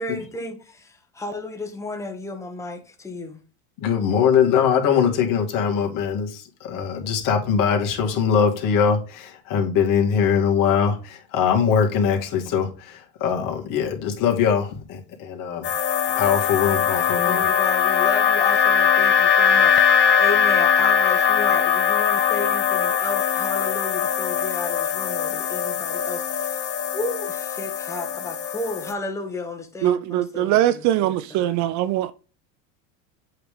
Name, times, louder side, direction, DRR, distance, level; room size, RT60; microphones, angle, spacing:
voice 1, 0.0-3.4 17.0-31.6, left 2 dB, 5° left, 1.3 m, -33 dB
voice 2, 3.8-15.7 16.2-17.4, left 7 dB, 50° left, 2.2 m, -22 dB
sound 1, 15.6-28.9, left 8 dB, 30° left, 0.7 m, -21 dB
voice 3, 29.8-32.1, right 13 dB, 45° right, 0.5 m, -21 dB
8.0 x 3.4 x 5.0 m
supercardioid pair, 120°, 41 cm